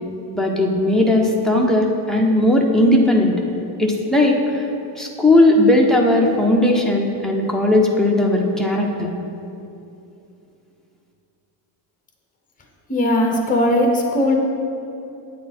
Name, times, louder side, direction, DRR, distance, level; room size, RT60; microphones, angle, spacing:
voice 1, 0.3-3.3 3.8-4.7 5.0-9.1, left 1 dB, ahead, 0 dB, 0.4 m, -17 dB
voice 2, 12.9-14.3, left 1 dB, 15° left, 2 dB, 1.0 m, -18 dB
8.5 x 8.3 x 4.2 m, 2.8 s
cardioid pair, 170°, 47 cm